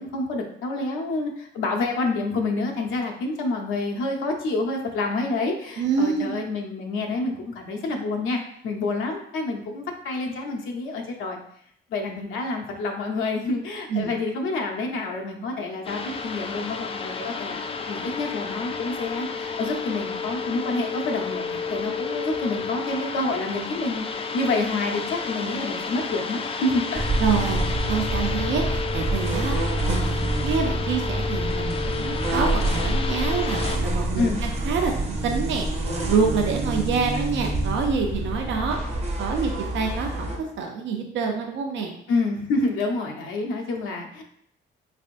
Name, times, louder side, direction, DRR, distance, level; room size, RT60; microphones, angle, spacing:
voice 1, 0.0-11.4 11.9-17.6 17.9-27.1 34.2-34.4 42.1-44.2, left 3 dB, 85° left, 2 dB, 0.7 m, -28 dB
voice 2, 5.8-6.4 13.9-14.1 27.2-29.6 29.9-34.3 34.6-35.7 36.0-38.8 39.2-41.9, right 5 dB, 70° right, 2 dB, 0.6 m, -26 dB
sound 1, 15.8-33.8, left 5 dB, 30° left, 0.4 m, -31 dB
sound 2, 26.9-40.4, right 1 dB, 35° right, 0.9 m, -27 dB
3.5 x 3.4 x 2.5 m, 0.69 s
cardioid pair, 90°, 20 cm